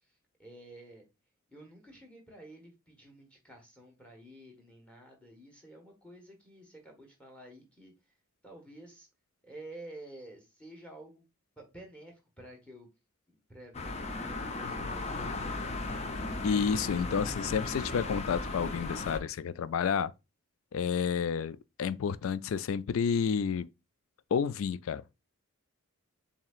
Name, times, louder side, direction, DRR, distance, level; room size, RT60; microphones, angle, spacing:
voice 1, 0.4-1.1 1.5-7.9 8.4-9.1 9.4-11.2 11.6-12.9 13.3-15.6, right 1 dB, 5° left, 1.3 m, -51 dB
sound 1, 13.7-19.2, left 2 dB, 30° left, 0.6 m, -36 dB
voice 2, 16.4-20.1 20.7-23.7 24.3-25.0, left 6 dB, 75° left, 0.3 m, -30 dB
7.2 x 2.8 x 2.4 m
head